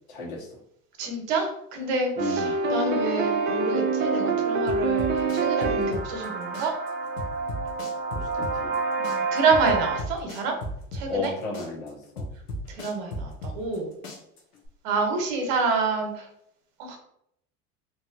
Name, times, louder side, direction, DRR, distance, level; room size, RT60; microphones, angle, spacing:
voice 1, 0.1-0.5 2.2-2.6 8.1-8.7 11.1-12.3, left 2 dB, 70° left, -3 dB, 1.3 m, -34 dB
voice 2, 1.0-6.7 9.0-10.5 10.9-11.3 12.7-13.9 14.8-16.2 16.8-17.0, right 4 dB, 60° right, 3 dB, 0.9 m, -27 dB
sound 1, 2.2-10.0, right 4 dB, 25° right, 0.4 m, -27 dB
sound 2, 4.7-6.3 6.5-8.8 9.0-11.3 11.5-13.8 14.0-14.7, equal, 85° left, 0.9 m, -35 dB
3.0 x 2.6 x 2.6 m, 0.73 s
hypercardioid pair, 85°, 44 cm